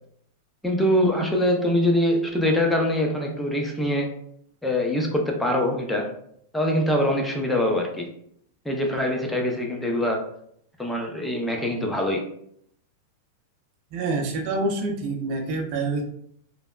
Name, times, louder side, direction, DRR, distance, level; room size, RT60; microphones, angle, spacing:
voice 1, 0.6-4.1 4.6-6.1 6.5-8.1 8.6-10.2 10.8-12.3, left 1 dB, 5° left, 1 dB, 0.6 m, -23 dB
voice 2, 13.9-16.0, right 3 dB, 50° right, 0 dB, 0.6 m, -26 dB
3.2 x 2.0 x 2.3 m, 0.68 s
hypercardioid pair, 105°, 0 cm